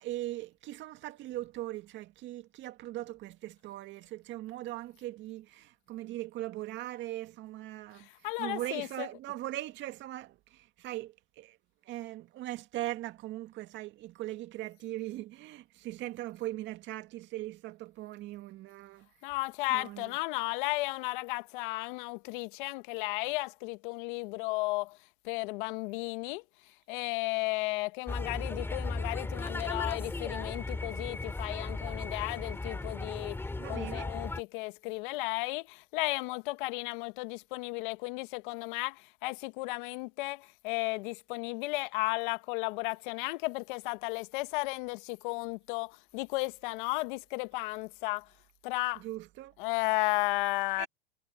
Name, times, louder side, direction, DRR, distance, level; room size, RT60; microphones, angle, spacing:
voice 1, 0.0-8.1 8.4-11.6 11.8-19.1 19.7-20.1 33.6-34.1 49.0-49.5 50.8-50.9, right 15 dB, 40° right, 2.1 m, -40 dB
voice 2, 7.9-9.1 19.2-25.0 25.2-33.4 33.7-48.3 48.6-49.0 49.6-50.9, left 24 dB, 60° left, 1.2 m, -34 dB
sound 1, 28.1-34.4, left 2 dB, 10° left, 3.9 m, -36 dB
supercardioid pair, 125°, 29 cm